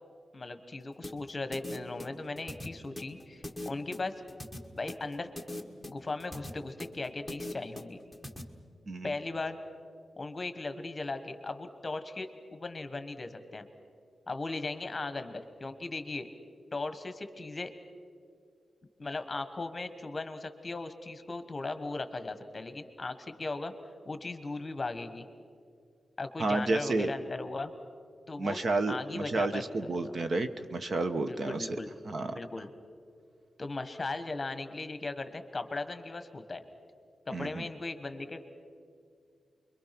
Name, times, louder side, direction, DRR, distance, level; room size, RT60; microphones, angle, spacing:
voice 1, 0.3-4.1 4.7-5.3 5.9-8.0 9.0-9.6 10.2-13.7 14.3-16.3 16.7-17.7 19.0-23.7 24.1-25.2 26.2-27.7 28.3-28.6 28.9-30.2 31.2-31.9 32.3-32.7 33.6-36.6 37.3-38.4, left 3 dB, 25° left, 9 dB, 1.4 m, -38 dB
sound 1, 1.0-8.4, left 1 dB, 5° left, 1.5 m, -41 dB
voice 2, 26.4-27.1 28.4-31.8 32.1-32.3 37.3-37.6, right 2 dB, 50° right, 9 dB, 1.0 m, -31 dB
29.0 x 23.0 x 6.0 m, 2.3 s
wide cardioid pair, 145°, 0 cm